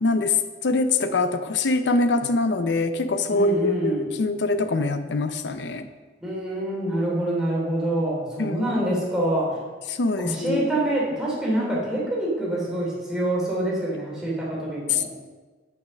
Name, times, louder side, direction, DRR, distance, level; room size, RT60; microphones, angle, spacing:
voice 1, 0.0-5.9 8.4-8.6 9.9-10.6 14.9-15.3, left 3 dB, 70° left, 9 dB, 0.6 m, -24 dB
voice 2, 3.3-4.1 6.2-9.6 10.2-15.0, right 1 dB, 5° right, -6 dB, 3.1 m, -26 dB
8.6 x 6.4 x 6.4 m, 1.3 s
head